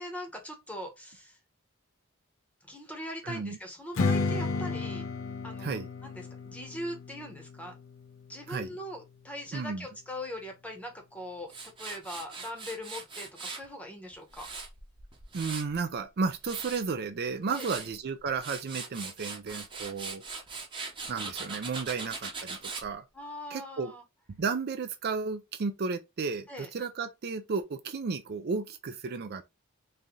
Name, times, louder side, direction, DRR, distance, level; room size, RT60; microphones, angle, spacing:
voice 1, 0.0-1.4 2.6-5.1 5.4-7.8 8.3-11.5 11.8-14.5 17.5-17.9 23.1-24.0 26.5-26.7, equal, 5° left, 0.9 m, -41 dB
voice 2, 3.2-3.6 5.6-5.9 8.5-8.8 9.5-9.9 15.3-20.2 21.1-23.0 23.5-23.9 24.4-29.4, right 4 dB, 50° right, 0.4 m, -33 dB
Strum, 3.9-9.2, left 3 dB, 65° left, 0.6 m, -33 dB
Tools, 11.5-13.7 14.1-15.8 16.2-16.8 17.3-17.9 18.3-22.9, right 4 dB, 25° right, 0.9 m, -40 dB
3.1 x 2.7 x 3.7 m
head